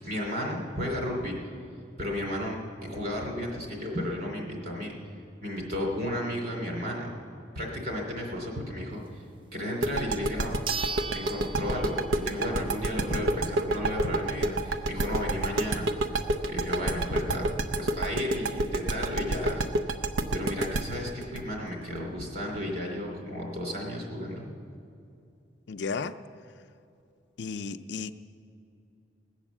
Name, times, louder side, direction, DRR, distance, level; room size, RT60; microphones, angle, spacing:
voice 1, 0.0-1.4 2.0-4.9 5.4-7.1 7.5-9.2 9.5-10.5 11.1-15.9 16.5-17.4 17.7-19.6 20.3-24.5, left 1 dB, 50° right, 3.0 m, -33 dB
sound 1, 9.8-9.9 10.7-12.4 12.8-12.9 17.5-17.6 17.8-17.9 18.5-18.9, right 4 dB, 25° right, 0.5 m, -37 dB
sound 2, 9.8-22.6, right 2 dB, 90° right, 0.7 m, -28 dB
voice 2, 25.7-26.2 27.4-28.1, left 4 dB, 60° left, 0.4 m, -33 dB
19.0 x 8.1 x 7.2 m
head